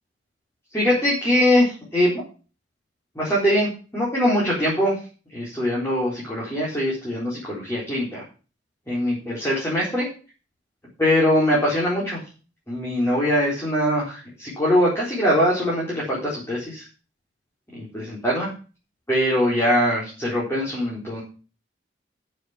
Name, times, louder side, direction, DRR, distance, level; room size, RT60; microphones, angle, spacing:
voice 1, 0.7-2.2 3.2-4.9 5.3-8.2 8.9-10.1 11.0-12.2 12.7-16.9 17.7-18.5 19.1-21.2, equal, 15° left, -6 dB, 4.2 m, -22 dB
9.8 x 7.0 x 7.4 m, 0.36 s
head